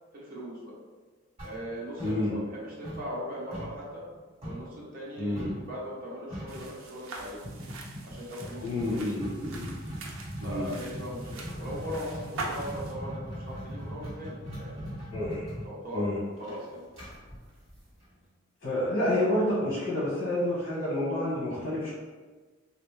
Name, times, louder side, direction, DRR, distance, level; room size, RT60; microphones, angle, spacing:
voice 1, 0.1-0.8 1.4-4.0 4.4-7.5 8.0-9.0 10.4-15.0 15.6-16.1 16.4-16.8, equal, 45° right, -5 dB, 0.9 m, -39 dB
sound 1, 1.4-2.6 2.8-4.7 5.4-5.7 6.0-6.1 6.3-6.7 7.4-18.2, equal, 30° right, 1.4 m, -40 dB
voice 2, 2.0-2.4 5.2-5.5 8.6-9.7 10.4-10.7 15.1-15.6 15.9-16.2 18.6-21.9, left 1 dB, 85° left, -8 dB, 1.1 m, -29 dB
sound 2, 6.5-12.9, right 2 dB, 80° right, 0.5 m, -43 dB
3.1 x 2.5 x 3.2 m, 1.4 s
head